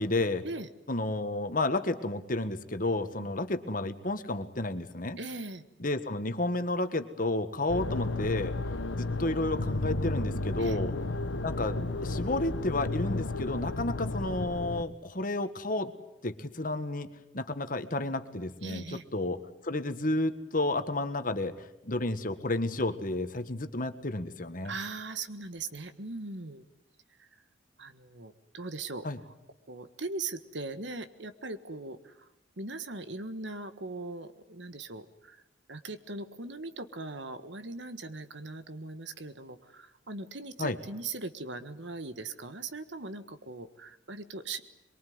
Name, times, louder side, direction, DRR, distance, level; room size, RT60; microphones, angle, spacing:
voice 1, 0.0-0.4 0.9-5.2 5.8-8.5 9.0-10.9 11.4-15.9 16.2-17.1 17.3-21.5 21.8-24.7 29.0-29.2 40.6-40.8, left 2 dB, 45° left, 9 dB, 1.6 m, -31 dB
voice 2, 5.2-5.6 10.6-10.8 18.6-19.0 24.6-26.6 27.8-29.1 29.7-32.3 32.6-35.4 35.7-44.6, right 3 dB, 70° right, 11 dB, 1.6 m, -40 dB
sound 1, 7.7-14.8, left 2 dB, 85° left, 1.1 m, -32 dB
23.5 x 23.0 x 9.5 m, 0.92 s
head